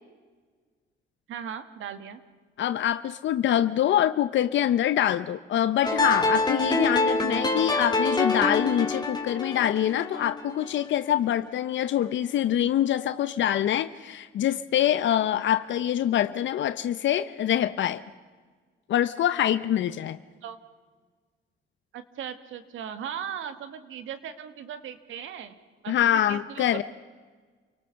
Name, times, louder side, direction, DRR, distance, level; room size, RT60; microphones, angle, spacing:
voice 1, 1.3-2.2 20.4-20.6 21.9-25.5 25.8-26.8, right 8 dB, 80° right, 10 dB, 1.9 m, -38 dB
voice 2, 2.6-18.0 18.9-20.2 25.9-26.8, left 11 dB, 70° left, 12 dB, 0.8 m, -25 dB
sound 1, 5.8-10.9, left 2 dB, 20° left, 3.5 m, -26 dB
29.5 x 18.5 x 6.9 m, 1.5 s
cardioid pair, 90°, 20 cm